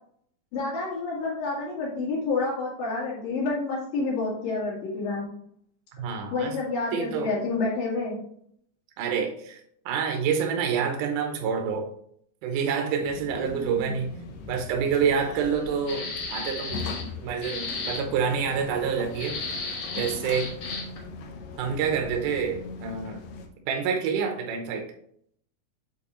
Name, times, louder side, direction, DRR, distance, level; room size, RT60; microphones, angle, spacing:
voice 1, 0.5-5.3 6.3-8.2, left 3 dB, 85° left, -6 dB, 3.6 m, -29 dB
voice 2, 6.0-6.6 6.9-7.4 9.0-9.6 9.9-11.9 12.4-14.2 14.5-19.4 19.9-20.5 21.6-23.2 23.7-24.9, right 6 dB, 75° right, 3 dB, 2.3 m, -27 dB
sound 1, 13.0-23.5, left 3 dB, 70° left, 1.7 m, -40 dB
sound 2, 15.9-17.1 17.4-18.0 19.1-21.0, left 3 dB, 55° left, 1.8 m, -34 dB
8.4 x 4.3 x 3.0 m, 0.67 s
omnidirectional pair, 3.9 m